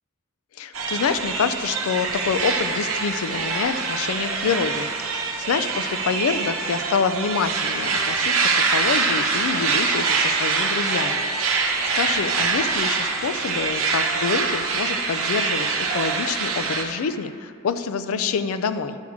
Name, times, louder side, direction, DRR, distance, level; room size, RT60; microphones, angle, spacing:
voice 1, 0.6-11.2 11.6-19.0, left 5 dB, 90° left, 11 dB, 0.4 m, -27 dB
sound 1, 0.7-16.8, right 4 dB, 75° right, 0.9 m, -24 dB
10.5 x 6.2 x 3.6 m, 2.3 s
head